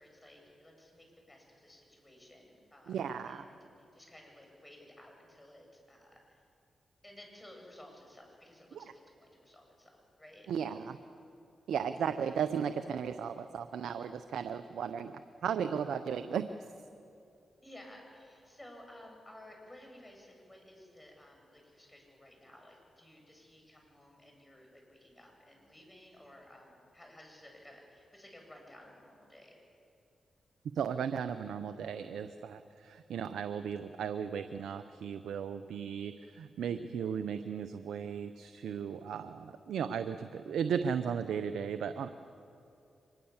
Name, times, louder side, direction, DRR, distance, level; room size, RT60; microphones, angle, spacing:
voice 1, 0.0-6.4 7.0-9.9 10.2-10.5 12.2-12.3 17.6-29.5, left 1 dB, 15° left, 1 dB, 7.9 m, -55 dB
voice 2, 2.9-3.4 8.7-8.8 10.5-11.0 11.7-16.5 30.7-42.1, right 7 dB, 80° right, 10 dB, 0.7 m, -35 dB
24.0 x 21.5 x 7.3 m, 2.5 s
supercardioid pair, 50°, 0 cm